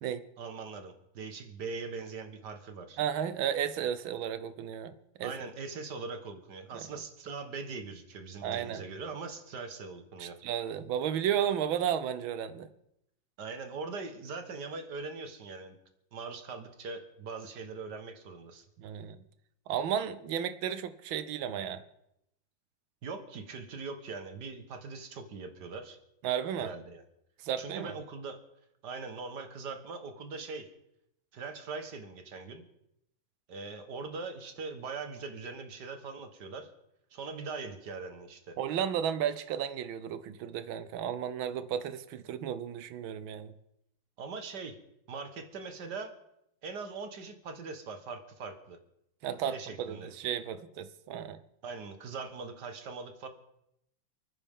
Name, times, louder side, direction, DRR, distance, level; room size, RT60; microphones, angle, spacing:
voice 1, 0.4-3.0 5.2-10.4 13.4-15.8 16.1-18.6 23.0-26.0 26.6-27.0 27.6-28.4 28.8-30.7 31.3-32.6 33.5-36.7 37.1-38.6 44.2-44.8 45.1-46.1 46.6-48.8 49.5-50.1 51.6-53.3, right 4 dB, 60° right, 7 dB, 1.9 m, -41 dB
voice 2, 3.0-5.3 6.7-6.8 8.4-8.8 10.2-12.7 18.8-19.2 19.7-21.8 26.2-26.7 27.4-27.9 38.6-43.5 49.2-51.4, right 9 dB, 85° right, 13 dB, 1.6 m, -33 dB
29.0 x 9.7 x 3.7 m, 0.80 s
omnidirectional pair, 2.1 m